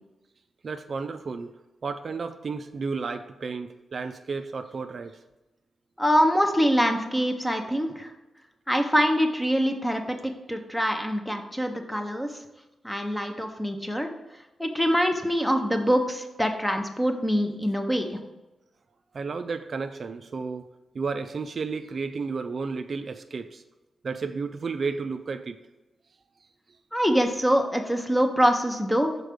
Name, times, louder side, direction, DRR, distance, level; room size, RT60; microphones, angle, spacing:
voice 1, 0.6-1.5 1.8-5.2 19.1-20.6 20.9-23.6 24.0-25.6, right 4 dB, 45° right, 8 dB, 0.3 m, -32 dB
voice 2, 6.0-8.1 8.7-12.3 12.8-14.1 14.6-18.2 26.9-29.1, equal, 5° left, 5 dB, 0.7 m, -24 dB
6.4 x 4.5 x 5.0 m, 1.0 s
wide cardioid pair, 135°, 0 cm